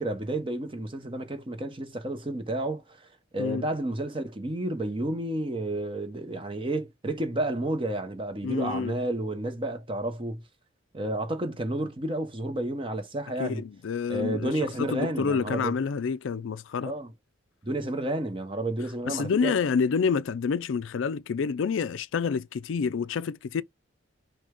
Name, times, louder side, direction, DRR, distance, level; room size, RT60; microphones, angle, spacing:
voice 1, 0.0-2.8 3.3-10.4 10.9-13.6 14.1-15.7 16.8-17.1 17.6-19.5, right 1 dB, 25° right, 0.9 m, -31 dB
voice 2, 8.4-9.0 13.4-16.9 19.1-23.6, left 5 dB, 70° left, 0.4 m, -28 dB
6.1 x 2.3 x 3.7 m
head